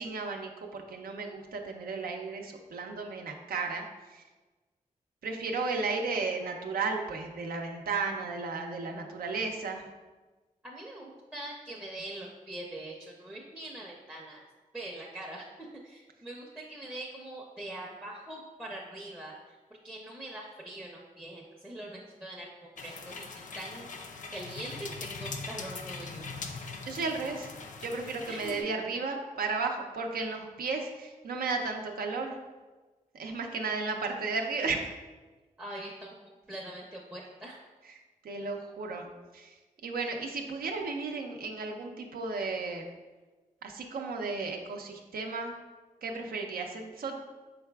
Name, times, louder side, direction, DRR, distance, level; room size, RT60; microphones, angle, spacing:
voice 1, 0.0-4.2 5.2-9.9 26.9-27.5 27.8-32.4 33.1-34.8 37.9-38.0 38.2-39.6 39.8-42.9 43.6-45.5 46.0-47.2, right 4 dB, 85° right, 3 dB, 0.5 m, -34 dB
voice 2, 10.6-14.4 14.7-19.6 19.8-23.3 23.5-26.2 28.3-28.6 35.6-36.2 36.5-37.6, right 1 dB, 5° right, -3 dB, 0.5 m, -43 dB
sound 1, 22.8-28.6, left 4 dB, 60° left, 0.4 m, -41 dB
4.6 x 3.9 x 2.2 m, 1.2 s
wide cardioid pair, 85°, 15 cm